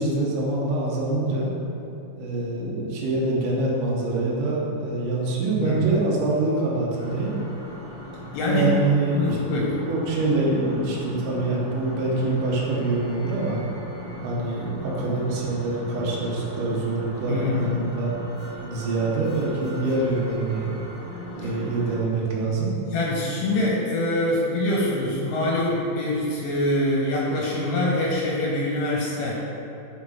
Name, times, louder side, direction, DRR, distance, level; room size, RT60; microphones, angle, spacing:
voice 1, 0.0-1.5 2.2-7.3 8.4-9.4 9.9-13.6 14.2-18.1 18.6-20.7 21.4-22.7, right 2 dB, 75° right, -5 dB, 1.9 m, -25 dB
sound 1, 6.9-22.0, left 1 dB, 60° left, 1.7 m, -39 dB
voice 2, 8.3-8.8 9.2-9.8 17.3-17.7 21.4-21.5 22.9-29.4, left 1 dB, 80° left, -4 dB, 3.5 m, -24 dB
6.1 x 4.9 x 3.6 m, 2.7 s
omnidirectional pair, 4.9 m